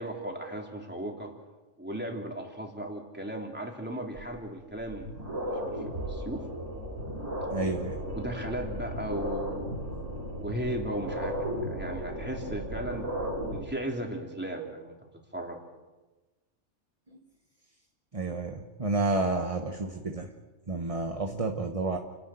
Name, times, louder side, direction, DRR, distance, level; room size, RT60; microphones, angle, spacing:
voice 1, 0.0-1.3 1.8-5.1 5.4-6.4 8.1-9.7 10.3-11.4 11.6-15.0 15.3-15.6, right 1 dB, 10° right, 1 dB, 3.3 m, -36 dB
sound 1, 4.2-4.3 4.8-13.6, equal, 65° right, 6.4 m, -35 dB
voice 2, 7.5-8.0 17.1-17.2 18.1-20.3 20.7-22.0, right 3 dB, 30° right, 4 dB, 1.3 m, -30 dB
30.0 x 11.0 x 9.2 m, 1.2 s
omnidirectional pair, 1.3 m